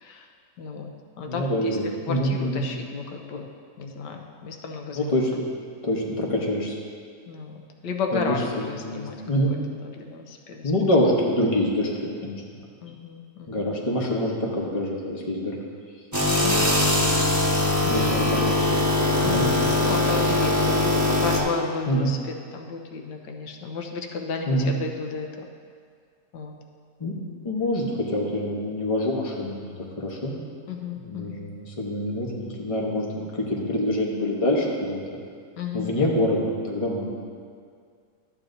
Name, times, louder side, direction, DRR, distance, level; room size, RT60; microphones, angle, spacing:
voice 1, 0.6-3.5 3.8-5.2 7.3-9.2 9.8-10.7 12.8-13.7 16.4-16.9 17.8-18.8 19.2-25.4 26.3-26.6 30.7-31.4 35.6-36.1, left 4 dB, 85° left, 3 dB, 1.4 m, -33 dB
voice 2, 1.3-2.6 4.9-5.4 5.8-6.7 8.1-8.3 8.7-9.5 10.6-12.3 13.5-15.5 17.9-18.4 19.2-19.5 21.9-22.1 24.5-24.7 27.0-27.2 27.4-30.4 31.0-35.0 35.7-37.1, left 1 dB, 25° left, -2 dB, 0.9 m, -25 dB
sound 1, 16.1-21.4, left 2 dB, 15° right, 0.8 m, -21 dB
12.0 x 8.6 x 2.6 m, 2.1 s
omnidirectional pair, 1.8 m